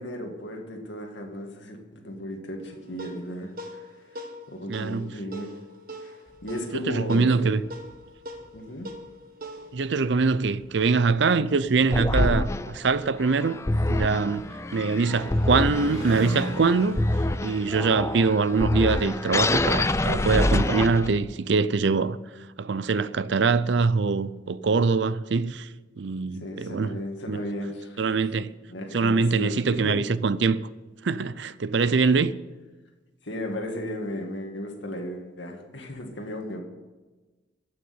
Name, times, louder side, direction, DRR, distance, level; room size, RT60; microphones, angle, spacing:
voice 1, 0.0-5.5 6.0-6.2 6.4-7.5 8.5-8.9 26.4-28.0 28.7-30.1 32.1-32.3 33.2-36.6, equal, 70° left, 2.3 m, -35 dB
sound 1, 2.6-11.3, equal, 50° right, 1.6 m, -43 dB
voice 2, 4.7-5.1 6.7-7.6 9.7-13.6 13.9-14.4 14.7-17.0 17.4-22.2 22.6-25.7 26.0-27.0 27.3-27.4 28.0-28.5 28.9-30.6 31.0-32.4, right 4 dB, 65° right, 0.5 m, -23 dB
sound 2, 6.3-6.6 7.1-8.0 8.4-8.5 8.9-9.1 9.8-9.9 10.1-19.9, left 1 dB, 35° right, 3.7 m, -41 dB
sound 3, 11.9-21.3, left 2 dB, 15° left, 0.4 m, -26 dB
14.5 x 6.6 x 9.6 m
head